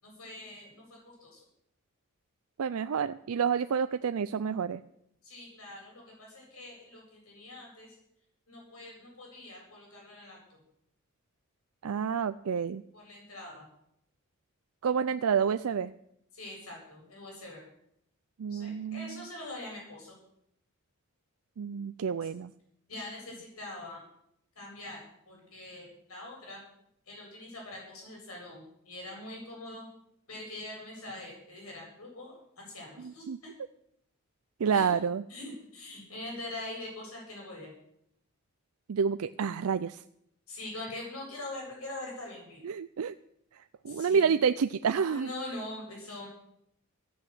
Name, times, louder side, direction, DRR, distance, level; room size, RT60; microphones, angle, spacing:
voice 1, 0.0-1.4 5.2-7.9 8.5-10.6 12.9-13.7 16.3-17.6 18.5-20.2 22.9-24.0 24.5-25.0 25.3-26.6 27.1-29.9 30.3-33.2 34.7-34.9 35.3-37.7 40.5-42.6 43.9-44.3 45.0-46.3, left 1 dB, 85° left, -1 dB, 7.9 m, -43 dB
voice 2, 2.6-4.8 11.8-12.8 14.8-15.9 18.4-19.2 21.6-22.5 33.0-33.4 34.6-35.2 38.9-40.0 42.6-43.1 43.8-45.3, right 6 dB, 85° right, 12 dB, 0.4 m, -29 dB
14.5 x 9.6 x 7.8 m, 0.76 s
head